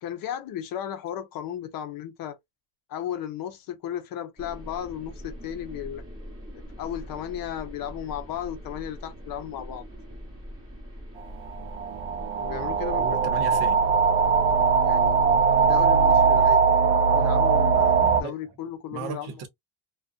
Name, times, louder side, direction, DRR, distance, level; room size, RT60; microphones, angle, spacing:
voice 1, 0.0-2.4 2.9-6.0 6.8-9.8 12.4-13.2 14.8-15.2 15.6-16.6 17.1-19.4, left 10 dB, 50° left, 0.6 m, -35 dB
sound 1, 4.4-16.5, equal, 10° right, 1.1 m, -42 dB
sound 2, 11.5-18.2, right 5 dB, 80° right, 0.5 m, -21 dB
voice 2, 12.9-13.8 16.1-16.2 18.2-18.3 18.9-19.5, right 6 dB, 55° right, 0.9 m, -36 dB
2.4 x 2.3 x 2.4 m
cardioid pair, 150°, 45 cm